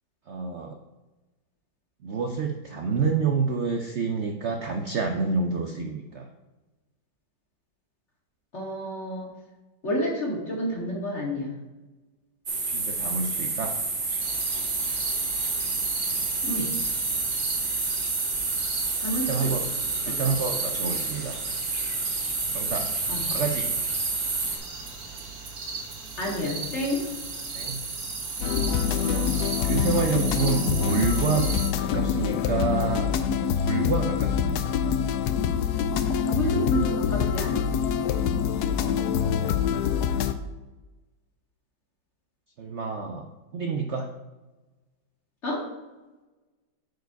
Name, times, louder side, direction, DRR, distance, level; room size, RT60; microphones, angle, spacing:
voice 1, 0.3-0.8 2.0-6.3 12.7-13.8 15.5-16.2 19.3-19.6 20.1-21.4 22.5-22.9 23.3-23.7 27.5-27.8 28.9-29.3 29.6-31.5 31.8-33.1 33.6-34.8 38.9-39.7 42.6-44.1, right 5 dB, 70° right, 4 dB, 0.6 m, -29 dB
voice 2, 8.5-9.3 9.8-11.5 16.4-16.7 19.0-19.5 20.1-20.2 23.1-23.2 26.2-27.0 36.3-37.6 45.4-45.6, equal, 35° left, -2 dB, 2.1 m, -29 dB
sound 1, 12.5-24.6, right 3 dB, 35° right, 1.2 m, -29 dB
sound 2, 14.2-31.7, right 4 dB, 55° right, 1.7 m, -36 dB
sound 3, 28.4-40.3, left 8 dB, 70° left, 1.0 m, -25 dB
9.3 x 4.8 x 4.6 m, 1.1 s
omnidirectional pair, 2.1 m